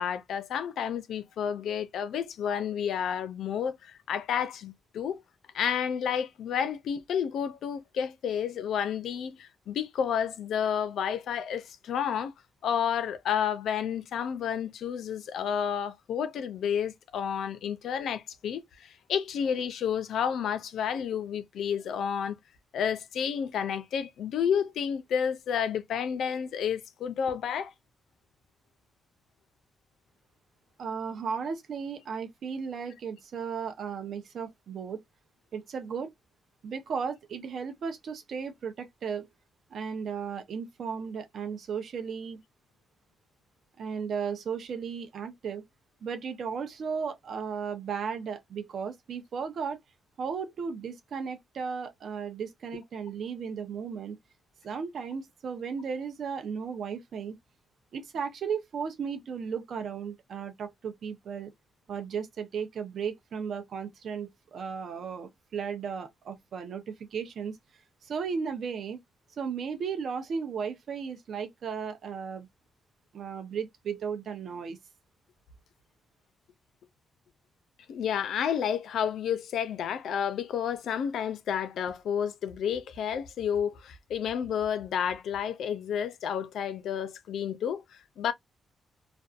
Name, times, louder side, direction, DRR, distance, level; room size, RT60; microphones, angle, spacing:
voice 1, 0.0-5.2 5.5-12.3 12.6-22.4 22.7-27.7 77.9-88.3, left 8 dB, 80° left, 0.4 m, -30 dB
voice 2, 30.8-35.0 35.5-36.1 36.6-39.3 39.7-42.4 43.8-45.6 46.0-49.8 50.2-54.2 54.6-57.4 57.9-61.5 61.9-67.6 68.0-69.0 69.4-72.5 73.1-74.8, right 6 dB, 65° right, 0.6 m, -35 dB
2.5 x 2.2 x 2.3 m
cardioid pair, 105°, 0 cm